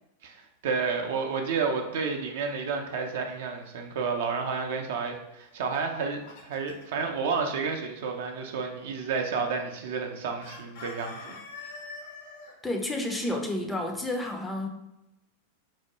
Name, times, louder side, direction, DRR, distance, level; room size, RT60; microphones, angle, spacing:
voice 1, 0.2-11.8, right 5 dB, 55° right, 3 dB, 0.4 m, -31 dB
Chicken rooster, 5.8-7.0 10.4-12.5, left 3 dB, 55° left, 0.7 m, -44 dB
voice 2, 12.6-14.7, left 1 dB, 10° left, 2 dB, 0.5 m, -30 dB
4.6 x 2.1 x 2.9 m, 0.89 s
figure-of-eight pair, 90°, 0 cm